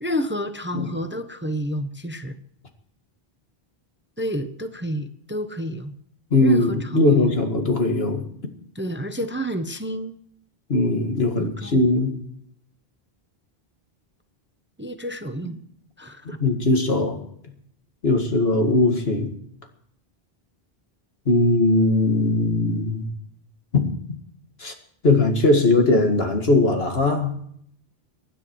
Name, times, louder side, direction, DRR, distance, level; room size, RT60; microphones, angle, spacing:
voice 1, 0.0-2.4 4.2-5.9 6.4-7.4 8.7-10.2 11.4-11.8 14.8-15.5 16.0-16.4, right 1 dB, 10° right, 8 dB, 0.8 m, -29 dB
voice 2, 6.3-8.5 10.7-12.1 16.3-17.2 18.0-19.3 21.3-23.1 23.7-24.2 24.6-24.7 25.0-27.3, left 2 dB, 75° left, 4 dB, 2.3 m, -20 dB
24.0 x 9.9 x 4.6 m, 0.68 s
omnidirectional pair, 1.0 m